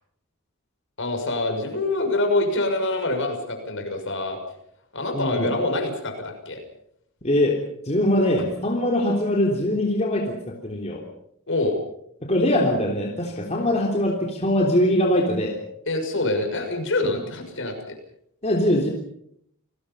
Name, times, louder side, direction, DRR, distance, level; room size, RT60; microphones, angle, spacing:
voice 1, 1.0-4.4 4.9-6.6 11.5-11.8 15.9-18.0, left 2 dB, 60° left, 4 dB, 6.4 m, -25 dB
voice 2, 5.1-5.5 7.2-7.6 7.9-11.0 12.3-15.6 17.0-17.1 18.4-18.9, left 1 dB, 30° left, 0 dB, 3.5 m, -22 dB
30.0 x 20.5 x 5.7 m, 0.71 s
head